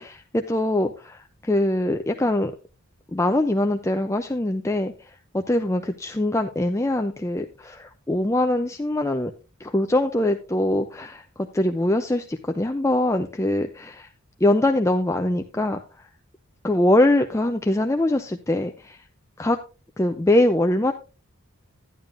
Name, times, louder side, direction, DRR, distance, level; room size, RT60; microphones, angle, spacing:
voice 1, 0.0-2.5 3.1-9.3 9.6-14.1 14.4-16.1 16.6-19.0 19.4-19.6 20.0-20.9, left 1 dB, 15° left, 6 dB, 0.4 m, -23 dB
12.0 x 10.5 x 2.5 m, 0.32 s
head